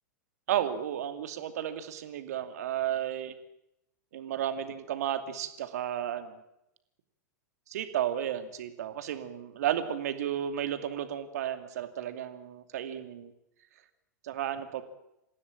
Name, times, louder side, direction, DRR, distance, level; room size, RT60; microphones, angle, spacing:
voice 1, 0.5-3.3 4.1-6.4 7.7-13.3 14.2-14.8, right 10 dB, 60° right, 8 dB, 2.6 m, -33 dB
28.0 x 15.5 x 8.6 m, 0.86 s
figure-of-eight pair, 95°, 10 cm